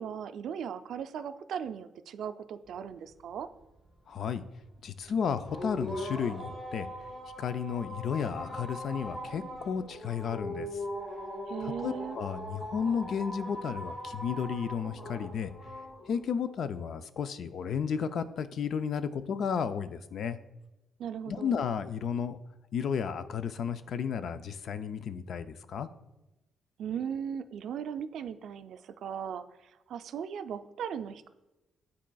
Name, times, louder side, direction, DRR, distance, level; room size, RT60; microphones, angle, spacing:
voice 1, 0.0-3.5 11.5-12.2 21.0-21.6 26.8-29.5 29.9-31.3, right 8 dB, 65° right, 10 dB, 0.3 m, -38 dB
voice 2, 4.1-4.4 4.8-6.9 7.4-10.7 11.6-15.5 16.1-20.4 21.3-22.4 22.7-25.9, left 7 dB, 60° left, 12 dB, 0.3 m, -33 dB
sound 1, 5.5-16.3, equal, 5° left, 2.0 m, -40 dB
10.0 x 4.1 x 2.3 m, 1.0 s
cardioid pair, 135°, 0 cm